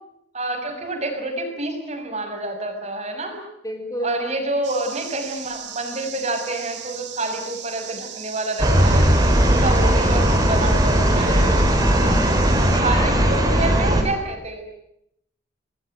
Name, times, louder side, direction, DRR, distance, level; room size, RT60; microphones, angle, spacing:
voice 1, 0.3-3.4 4.0-9.1 9.3-11.5 12.2-14.6, right 2 dB, 35° right, 4 dB, 6.4 m, -28 dB
voice 2, 3.6-4.3 11.0-12.3 12.6-13.2 13.5-13.7, equal, 20° left, 4 dB, 4.2 m, -32 dB
sound 1, 4.6-12.8, right 9 dB, 70° right, 5.0 m, -37 dB
sound 2, 8.6-14.0, right 1 dB, 20° right, 4.5 m, -18 dB
27.5 x 20.0 x 9.2 m, 0.76 s
head